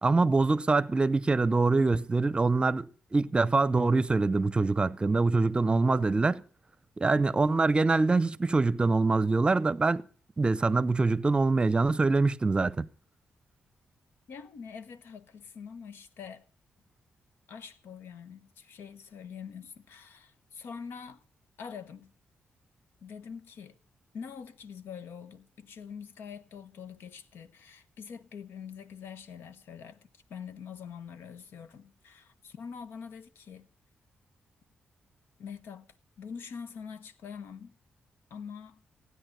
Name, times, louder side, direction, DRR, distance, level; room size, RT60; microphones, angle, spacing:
voice 1, 0.0-6.4 7.0-10.0 10.4-12.9, right 3 dB, 25° right, 0.7 m, -24 dB
voice 2, 14.3-16.4 17.5-21.2 21.6-22.1 23.0-23.8 24.1-33.7 35.4-37.8 38.3-38.8, left 6 dB, 80° left, 1.1 m, -44 dB
16.0 x 9.6 x 6.7 m
cardioid pair, 85°, 4 cm